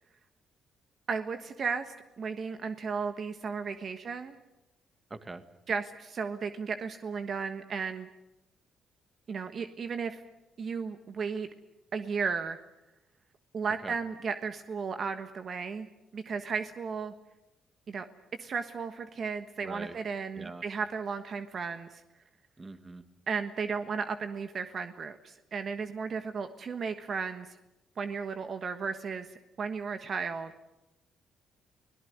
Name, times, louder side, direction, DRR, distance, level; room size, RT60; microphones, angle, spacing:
voice 1, 1.1-4.3 5.7-8.1 9.3-10.2 10.6-11.5 11.9-12.6 13.5-15.9 16.1-17.1 17.9-18.1 18.4-22.0 23.3-27.5 28.0-29.3 29.6-30.5, right 5 dB, 50° right, 9 dB, 1.3 m, -34 dB
voice 2, 5.1-5.4 13.8-14.0 19.6-20.0 20.4-20.6 22.6-23.0, right 3 dB, 25° right, 11 dB, 1.8 m, -43 dB
25.0 x 18.0 x 9.5 m, 0.95 s
cardioid pair, 90°, 0 cm